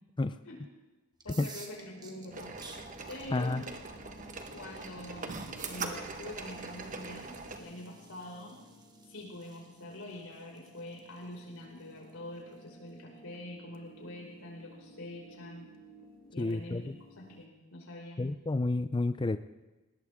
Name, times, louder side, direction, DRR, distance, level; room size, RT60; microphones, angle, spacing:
sound 1, 1.1-12.9, right 4 dB, 20° right, 1.5 m, -55 dB
voice 1, 1.2-2.5 3.1-3.6 4.5-8.6 9.1-15.7 16.3-16.9 17.2-18.2, left 1 dB, 90° left, -1 dB, 5.6 m, -45 dB
sound 2, 1.7-17.5, right 1 dB, 45° left, 1.6 m, -56 dB
sound 3, 2.3-7.6, right 4 dB, 40° right, 1.4 m, -42 dB
voice 2, 3.3-3.6 16.4-17.0 18.2-19.4, left 2 dB, 25° left, 11 dB, 0.4 m, -30 dB
20.5 x 18.5 x 3.7 m, 1.1 s
head